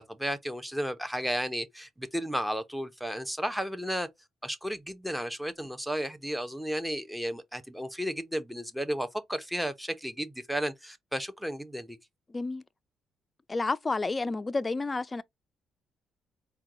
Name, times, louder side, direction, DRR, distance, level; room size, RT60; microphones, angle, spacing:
voice 1, 0.0-4.1 4.4-12.0, equal, 5° right, 0.8 m, -33 dB
voice 2, 12.3-12.6 13.5-15.2, left 3 dB, 25° left, 0.4 m, -30 dB
4.5 x 2.2 x 3.7 m
cardioid pair, 90°, 0 cm